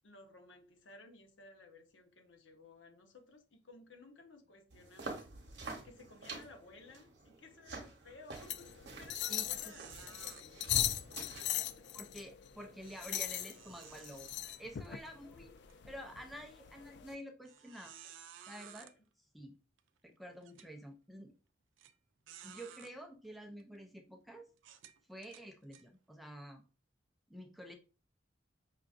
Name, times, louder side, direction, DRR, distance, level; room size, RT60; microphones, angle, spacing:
voice 1, 0.0-5.3 5.8-8.7 9.0-11.9 18.7-19.0, left 2 dB, 85° left, 0.9 m, -57 dB
sound 1, 4.7-11.7, right 2 dB, 60° right, 1.0 m, -47 dB
sound 2, 8.3-17.1, left 12 dB, 65° left, 0.3 m, -39 dB
sound 3, 8.5-8.8 9.1-9.2 9.6-10.4 12.8-15.1 15.6-15.7 16.4-16.5 17.5-18.9 19.8-19.9 20.4-20.7 21.8-21.9 22.3-22.9 23.6-23.8 24.6-25.8, right 9 dB, 90° right, 0.4 m, -55 dB
voice 2, 9.3-9.7 11.9-14.3 14.6-15.5 15.8-18.1 18.5-18.9 19.3-19.6 20.0-21.3 22.4-24.5 25.1-26.6 27.3-27.7, equal, ahead, 0.4 m, -49 dB
5.6 x 2.5 x 2.4 m
head